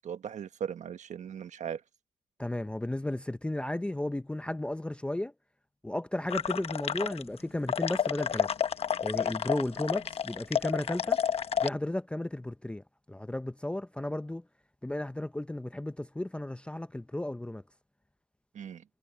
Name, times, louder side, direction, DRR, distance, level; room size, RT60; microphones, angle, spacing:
voice 1, 0.0-1.8 18.5-18.8, right 8 dB, 45° right, 1.3 m, -38 dB
voice 2, 2.4-5.3 5.8-8.5 9.0-11.2 11.6-14.4 14.8-17.6, left 1 dB, 5° left, 0.7 m, -34 dB
sound 1, 6.3-7.4 7.7-11.7, left 8 dB, 35° left, 1.0 m, -30 dB
cardioid pair, 110°, 17 cm